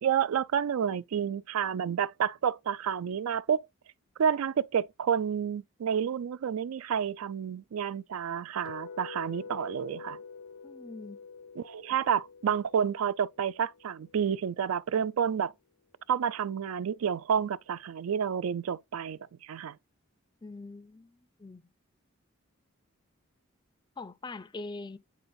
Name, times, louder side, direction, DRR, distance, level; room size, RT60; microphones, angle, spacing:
voice 1, 0.0-3.7 4.2-10.2 11.6-15.5 16.1-19.8, right 8 dB, 90° right, 0.4 m, -30 dB
sound 1, 8.6-14.7, left 5 dB, 85° left, 0.5 m, -47 dB
voice 2, 10.6-11.2 20.4-21.7 24.0-25.0, left 3 dB, 20° left, 0.4 m, -43 dB
9.4 x 3.8 x 2.6 m
head